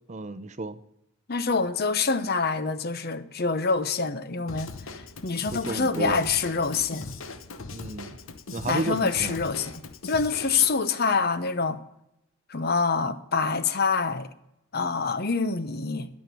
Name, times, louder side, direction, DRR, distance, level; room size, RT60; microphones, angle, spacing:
voice 1, 0.1-0.8 5.5-6.3 7.7-8.2 8.5-9.4 13.1-13.2, right 2 dB, 35° right, 0.6 m, -32 dB
voice 2, 1.3-4.7 5.2-7.1 8.7-11.8 12.5-14.3 14.7-16.1, left 4 dB, 50° left, 0.8 m, -26 dB
Drum kit / Drum, 4.5-10.7, left 3 dB, 75° left, 1.0 m, -40 dB
12.0 x 6.5 x 9.2 m
head